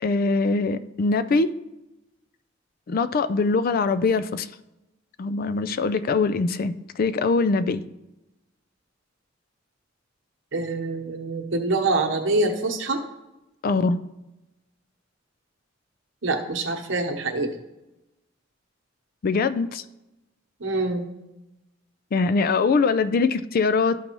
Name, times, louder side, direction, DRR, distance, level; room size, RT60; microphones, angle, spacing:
voice 1, 0.0-1.5 2.9-4.5 5.2-7.8 13.6-14.0 19.2-19.8 22.1-24.0, left 4 dB, 50° left, 14 dB, 0.4 m, -22 dB
voice 2, 10.5-13.0 16.2-17.6 20.6-21.0, right 2 dB, 75° right, 3 dB, 1.0 m, -25 dB
12.5 x 5.3 x 3.0 m, 0.97 s
head